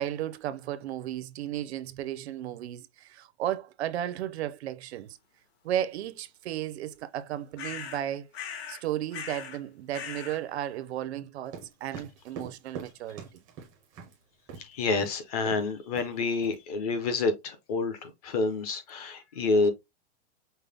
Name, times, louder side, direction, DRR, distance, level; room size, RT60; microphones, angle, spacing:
voice 1, 0.0-5.2 5.6-8.3 8.7-13.2, right 12 dB, 65° right, 0.6 m, -34 dB
sound 1, 7.6-8.0 8.3-8.8 9.1-9.6 9.9-10.4, left 8 dB, 60° left, 1.4 m, -39 dB
sound 2, 11.5-14.1 14.5-14.7 15.0-15.2 15.5-15.7 15.9-16.5, right 6 dB, 10° right, 0.5 m, -43 dB
voice 2, 14.6-19.7, left 3 dB, 35° left, 0.6 m, -28 dB
5.5 x 2.0 x 3.4 m
supercardioid pair, 180°, 35 cm